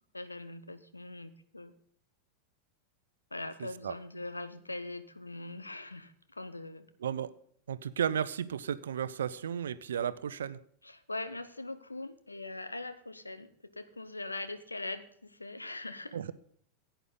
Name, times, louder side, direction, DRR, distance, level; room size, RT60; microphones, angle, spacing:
voice 1, 0.1-1.7 3.3-6.9 10.8-16.2, left 2 dB, 80° left, 11 dB, 1.0 m, -41 dB
voice 2, 3.6-3.9 7.0-7.3 7.7-10.6 16.1-16.3, right 8 dB, 65° right, 16 dB, 0.7 m, -34 dB
16.0 x 9.1 x 3.9 m, 0.63 s
figure-of-eight pair, 90°, 0 cm